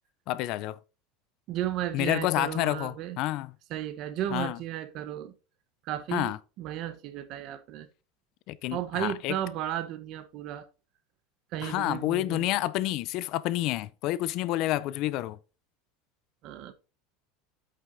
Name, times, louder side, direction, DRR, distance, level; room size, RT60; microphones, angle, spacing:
voice 1, 0.3-0.8 1.9-3.5 4.3-4.6 6.1-6.4 8.5-9.4 11.6-15.4, left 15 dB, 45° left, 0.4 m, -29 dB
voice 2, 1.5-3.2 3.7-5.3 5.9-7.9 8.7-10.7 11.5-12.6 16.4-16.7, right 12 dB, 45° right, 1.0 m, -34 dB
8.4 x 7.6 x 2.7 m
supercardioid pair, 160°, 0 cm